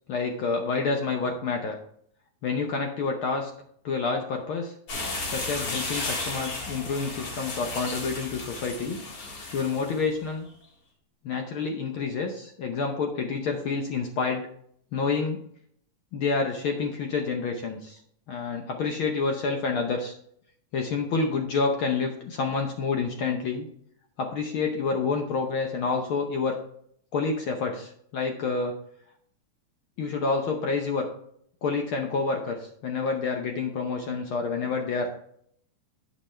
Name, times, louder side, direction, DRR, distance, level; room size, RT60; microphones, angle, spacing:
voice 1, 0.1-1.8 2.4-3.5 3.8-4.7 5.3-9.0 9.5-10.5 11.2-14.5 14.9-15.4 16.1-18.0 18.3-20.1 20.7-23.7 24.2-26.6 27.1-28.7 30.0-31.1 31.6-35.1, left 4 dB, 75° left, 3 dB, 1.2 m, -28 dB
sound 1, 4.9-10.0, left 3 dB, 55° left, 2.6 m, -34 dB
9.9 x 5.5 x 3.3 m, 0.67 s
omnidirectional pair, 3.4 m